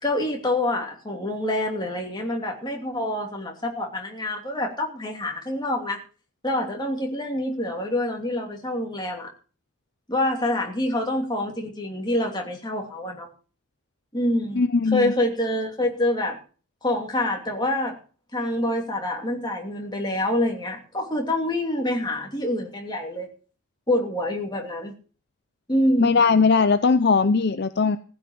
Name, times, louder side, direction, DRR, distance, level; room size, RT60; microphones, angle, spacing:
voice 1, 0.0-6.0 6.4-9.3 10.1-13.3 14.1-16.4 16.8-18.0 18.3-23.3 23.9-24.9 25.7-26.2, left 1 dB, 20° left, 1 dB, 2.7 m, -26 dB
voice 2, 14.6-15.1 26.0-28.0, left 4 dB, 50° left, 11 dB, 0.6 m, -19 dB
15.5 x 5.9 x 8.7 m, 0.40 s
head